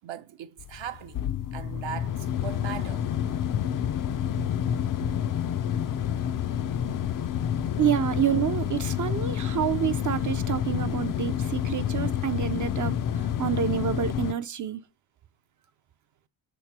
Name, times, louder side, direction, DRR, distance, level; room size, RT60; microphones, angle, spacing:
voice 1, 0.0-3.0, right 9 dB, 65° right, 0.8 m, -39 dB
sound 1, 0.6-14.3, left 9 dB, 45° left, 0.5 m, -29 dB
voice 2, 7.8-14.8, right 10 dB, 40° right, 0.5 m, -28 dB
6.4 x 3.1 x 5.8 m
cardioid pair, 80°, 48 cm